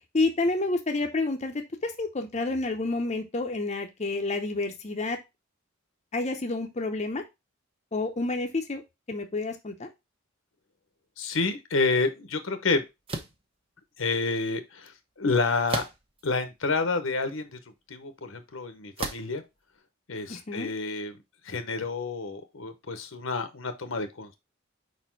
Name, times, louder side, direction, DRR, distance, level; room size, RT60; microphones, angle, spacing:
voice 1, 0.1-1.5 1.8-5.2 6.1-7.2 7.9-8.8 9.1-9.9 20.3-20.7, left 2 dB, 35° left, 4 dB, 0.7 m, -29 dB
voice 2, 11.2-12.8 14.0-15.8 16.2-17.6 17.9-19.4 20.1-21.1 21.4-24.3, left 3 dB, 75° left, 9 dB, 1.0 m, -29 dB
sound 1, 13.1-13.4 15.7-16.2 16.9-17.0 19.0-19.4, right 3 dB, 30° right, 0.9 m, -33 dB
4.9 x 4.2 x 4.5 m, 0.22 s
head